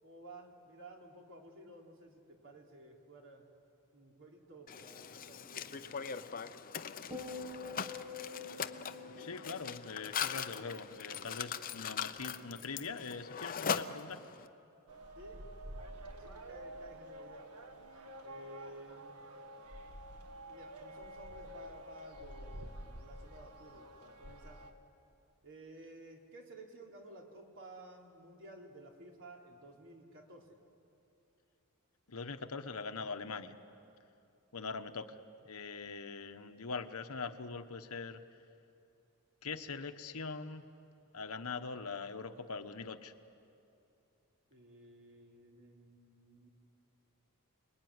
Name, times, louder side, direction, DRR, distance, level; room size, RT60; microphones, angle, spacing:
voice 1, 0.0-3.5 3.9-6.6 15.2-15.4 15.8-17.4 18.2-19.2 20.4-24.6 25.4-30.6 44.5-46.5, right 1 dB, 60° right, 0 dB, 3.4 m, -54 dB
Mechanisms, 4.7-14.5, left 7 dB, 40° left, 0.7 m, -41 dB
sound 1, 7.1-11.5 11.8-12.2, left 4 dB, 15° right, 1.4 m, -48 dB
voice 2, 9.2-14.2 32.1-33.6 34.5-38.2 39.4-40.7 41.1-43.1, left 4 dB, 70° left, 8 dB, 1.2 m, -42 dB
sound 2, 14.9-24.7, right 1 dB, 90° right, 1.8 m, -49 dB
29.5 x 21.0 x 9.7 m, 2.7 s
head